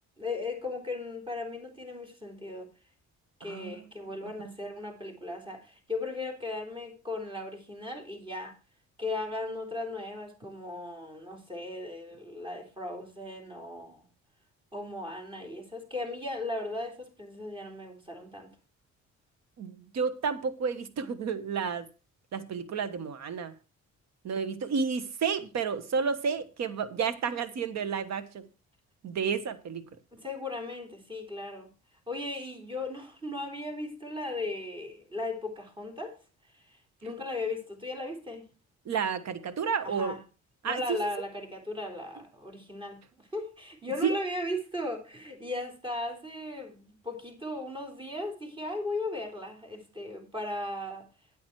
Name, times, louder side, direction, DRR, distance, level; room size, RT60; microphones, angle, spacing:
voice 1, 0.2-2.7 3.4-8.5 9.0-14.1 14.7-18.5 30.1-31.7 32.1-36.2 36.7-36.8 37.0-38.5 39.8-40.2 40.6-51.1, left 2 dB, 15° right, 3.6 m, -37 dB
voice 2, 3.4-3.8 4.2-4.3 19.6-21.9 22.3-23.5 24.2-28.4 29.0-29.8 38.8-40.1 40.6-41.0 44.0-44.2, right 6 dB, 60° right, 1.3 m, -31 dB
9.3 x 8.9 x 4.6 m
cardioid pair, 90°, 30 cm